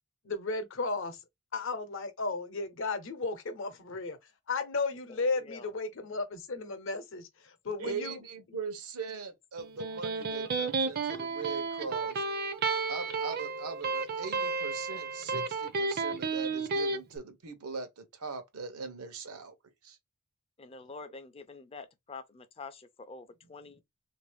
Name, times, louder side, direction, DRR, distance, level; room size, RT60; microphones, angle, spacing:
voice 1, 0.2-1.2 1.5-4.2 4.5-8.2, left 3 dB, 60° left, 0.8 m, -34 dB
voice 2, 5.1-5.7 20.6-23.8, left 4 dB, 25° left, 0.4 m, -47 dB
voice 3, 7.8-12.2 12.9-19.5 19.8-20.0, right 5 dB, 85° right, 0.8 m, -40 dB
Electric guitar, 9.6-17.0, right 4 dB, 45° right, 0.5 m, -32 dB
3.3 x 2.6 x 3.3 m
head